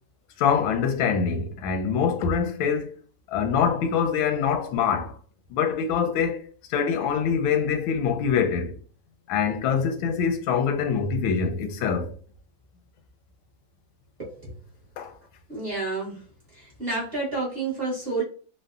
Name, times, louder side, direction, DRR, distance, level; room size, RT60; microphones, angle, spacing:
voice 1, 0.4-2.9 3.3-5.2 5.5-6.4 6.7-8.7 9.3-12.1 15.0-15.1, left 6 dB, 85° left, 1.4 m, -24 dB
voice 2, 14.2-14.5 15.5-16.2 16.5-18.2, right 3 dB, 40° right, 0.9 m, -30 dB
3.5 x 2.0 x 2.3 m
omnidirectional pair, 2.1 m